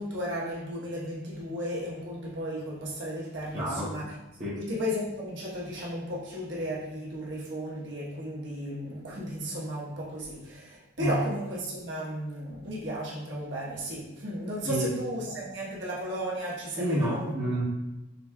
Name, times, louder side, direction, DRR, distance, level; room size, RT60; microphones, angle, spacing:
voice 1, 0.0-4.1 4.5-17.3, equal, 55° right, 1.0 m, -34 dB
voice 2, 3.5-3.9 4.4-4.6 11.0-11.2 14.6-14.9 16.8-17.6, equal, 30° right, 0.8 m, -29 dB
5.1 x 3.3 x 2.2 m
head